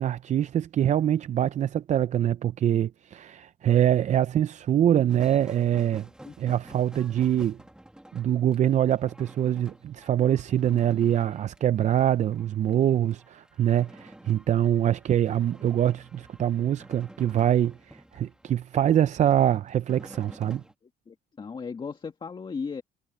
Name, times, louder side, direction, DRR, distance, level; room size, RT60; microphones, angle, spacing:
voice 1, 0.0-6.1 6.4-7.6 8.1-20.6, right 10 dB, 45° right, 0.6 m, -24 dB
sound 1, 5.1-20.7, right 1 dB, 5° right, 2.4 m, -50 dB
voice 2, 21.1-22.8, left 5 dB, 30° left, 1.9 m, -36 dB
cardioid pair, 110°, 17 cm